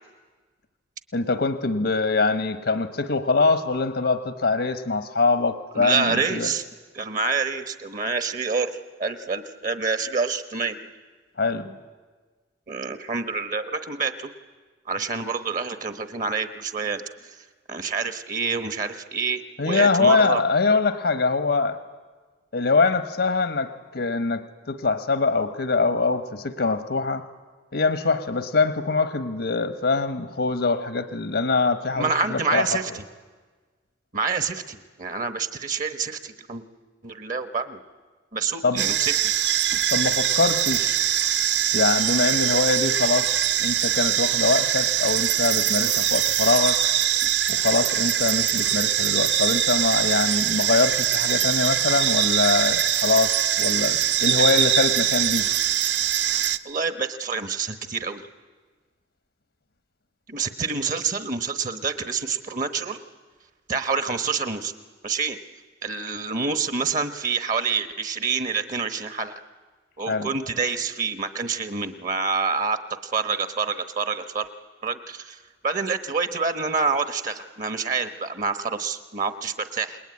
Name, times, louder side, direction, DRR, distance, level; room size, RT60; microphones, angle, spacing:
voice 1, 1.1-6.5 11.4-11.8 19.6-21.8 22.5-27.2 27.7-32.8 38.6-38.8 39.9-41.0 41.7-46.8 47.5-55.5 70.1-70.3, left 4 dB, 70° left, 10 dB, 1.1 m, -23 dB
voice 2, 5.7-6.6 6.9-10.8 12.7-14.3 14.9-17.0 17.7-20.4 31.9-33.0 34.1-36.6 37.0-37.8 38.3-39.3 56.6-58.2 60.3-63.0 63.7-64.7 65.0-65.4 65.8-69.3 70.0-74.5 74.8-80.0, right 5 dB, 45° right, 10 dB, 1.1 m, -27 dB
sound 1, 38.8-56.6, right 10 dB, 65° right, 0.9 m, -22 dB
28.0 x 21.0 x 9.6 m, 1.4 s
head